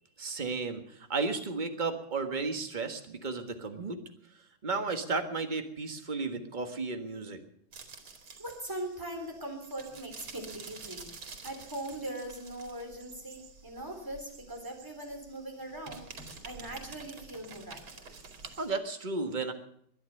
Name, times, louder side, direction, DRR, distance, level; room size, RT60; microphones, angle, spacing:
voice 1, 0.2-4.0 4.6-7.4 18.6-19.5, right 4 dB, 25° right, 6 dB, 1.5 m, -33 dB
sound 1, 7.7-18.7, right 4 dB, 90° right, 3.1 m, -49 dB
voice 2, 8.4-17.8, right 1 dB, 10° right, 3 dB, 3.6 m, -41 dB
21.0 x 10.5 x 6.6 m, 0.68 s
omnidirectional pair, 2.2 m